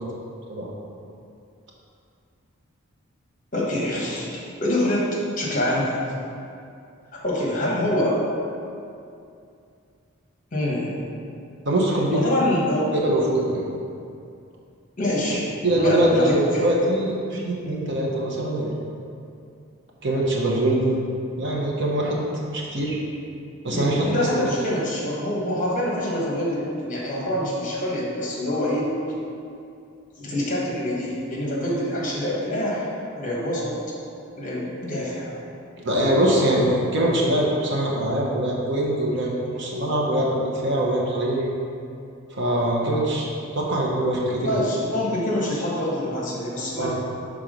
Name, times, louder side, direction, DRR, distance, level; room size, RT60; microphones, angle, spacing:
voice 1, 3.5-5.1 5.4-6.0 7.1-8.2 10.5-10.9 12.1-12.9 15.0-16.7 23.7-28.9 30.2-32.9 33.2-33.7 34.4-35.4 42.9-43.0 44.4-46.9, left 1 dB, 35° left, -5 dB, 1.2 m, -25 dB
voice 2, 11.6-12.2 12.9-13.6 15.6-18.7 20.0-21.0 21.4-22.2 22.5-23.0 23.6-24.5 35.8-41.5 42.3-44.7 46.8-46.9, right 1 dB, 55° right, -3 dB, 0.9 m, -23 dB
6.0 x 3.6 x 5.1 m, 2.5 s
head